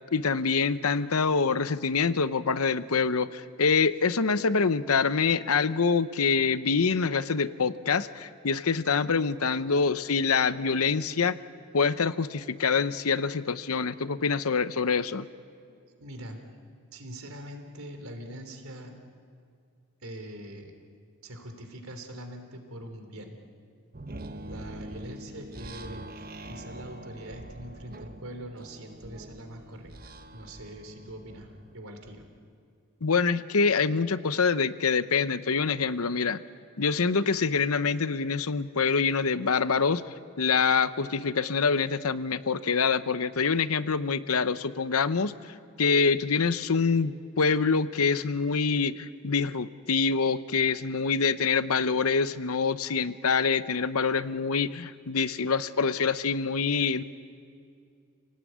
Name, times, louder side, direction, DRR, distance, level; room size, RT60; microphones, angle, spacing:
voice 1, 0.1-11.4 11.7-15.3 33.0-36.4 36.8-40.0 40.4-45.3 45.8-57.0, left 5 dB, 85° left, 13 dB, 0.8 m, -25 dB
voice 2, 16.0-16.4 16.9-18.9 20.0-20.7 21.2-23.3 24.5-32.2, right 1 dB, 75° right, 5 dB, 3.5 m, -43 dB
sound 1, 23.9-32.3, right 1 dB, 40° right, 0.9 m, -44 dB
29.0 x 18.0 x 9.4 m, 2.3 s
head